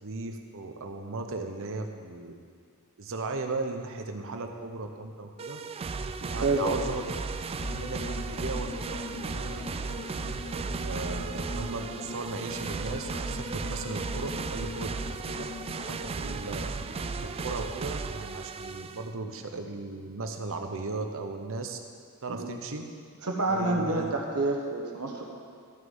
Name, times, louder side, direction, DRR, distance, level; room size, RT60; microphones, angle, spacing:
voice 1, 0.0-2.3 3.0-5.6 6.3-7.0 7.8-9.6 10.5-15.5 15.9-16.7 17.4-21.8 22.2-22.8 23.5-24.1, right 3 dB, 65° right, 5 dB, 0.9 m, -36 dB
sound 1, 5.4-19.1, right 4 dB, 25° right, 0.3 m, -35 dB
voice 2, 6.2-6.8 22.3-22.4 23.2-25.3, right 2 dB, 85° right, 1 dB, 1.3 m, -28 dB
sound 2, 7.6-17.7, left 3 dB, 65° left, 0.7 m, -42 dB
13.5 x 6.5 x 5.5 m, 2.1 s
head